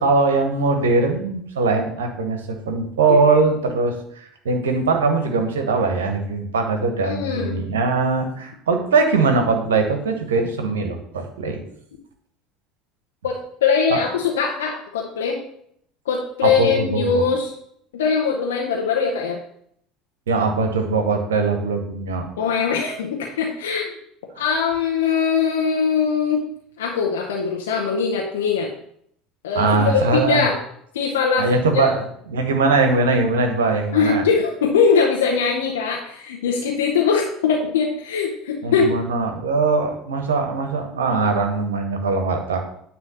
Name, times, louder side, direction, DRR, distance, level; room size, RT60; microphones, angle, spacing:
voice 1, 0.0-11.6 13.9-14.0 16.4-17.2 20.3-22.3 24.3-24.5 29.5-30.5 31.4-32.0 32.3-34.2 38.6-42.6, right 3 dB, 75° right, 5 dB, 1.3 m, -21 dB
voice 2, 7.0-7.5 13.2-15.4 16.1-17.5 17.9-19.4 22.4-23.9 24.4-26.4 26.8-28.7 29.4-30.5 30.9-31.5 31.7-31.9 33.9-38.9, left 6 dB, 75° left, -1 dB, 1.0 m, -21 dB
9.6 x 3.4 x 6.8 m, 0.69 s
figure-of-eight pair, 65°, 0 cm